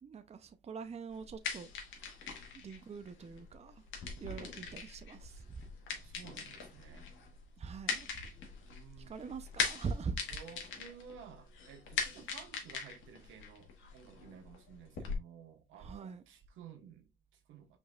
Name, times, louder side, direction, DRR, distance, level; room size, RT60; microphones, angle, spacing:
voice 1, 0.0-1.7 2.5-3.8 4.2-5.6 7.6-8.2 9.0-10.4 15.8-16.2, right 5 dB, 35° right, 0.6 m, -43 dB
sound 1, 1.1-15.1, left 5 dB, 75° left, 1.4 m, -42 dB
voice 2, 4.2-4.5 5.9-7.1 8.7-9.1 10.3-17.8, right 7 dB, 90° right, 1.2 m, -54 dB
5.2 x 3.9 x 2.3 m
cardioid pair, 90°, 20 cm